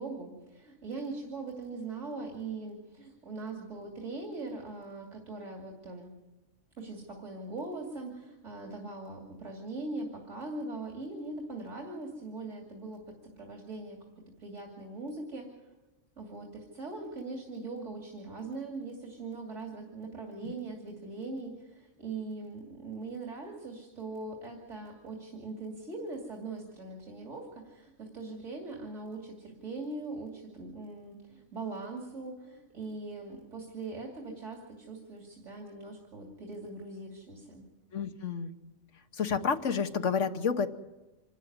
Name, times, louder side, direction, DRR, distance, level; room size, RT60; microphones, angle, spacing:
voice 1, 0.0-6.1 6.8-14.0 14.4-15.5 16.2-37.7, right 3 dB, 80° right, 1 dB, 3.1 m, -41 dB
voice 2, 37.9-38.5 39.1-40.7, left 6 dB, 80° left, 7 dB, 1.5 m, -29 dB
26.5 x 13.0 x 9.5 m, 1.1 s
omnidirectional pair, 1.2 m